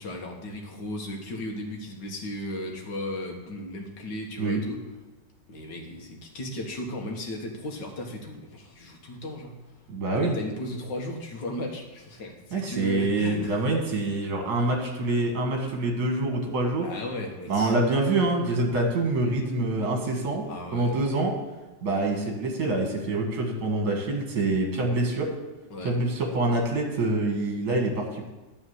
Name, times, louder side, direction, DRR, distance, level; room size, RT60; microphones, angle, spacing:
voice 1, 0.0-4.8 5.5-9.5 10.2-13.5 16.8-17.7 20.5-21.0 25.7-25.9, left 1 dB, 75° left, 1 dB, 2.0 m, -36 dB
voice 2, 9.9-10.4 12.5-16.9 17.5-20.5 20.7-21.3 21.8-25.3 25.8-28.3, right 2 dB, 60° right, 2 dB, 2.1 m, -26 dB
11.5 x 4.4 x 7.9 m, 1.1 s
omnidirectional pair, 1.9 m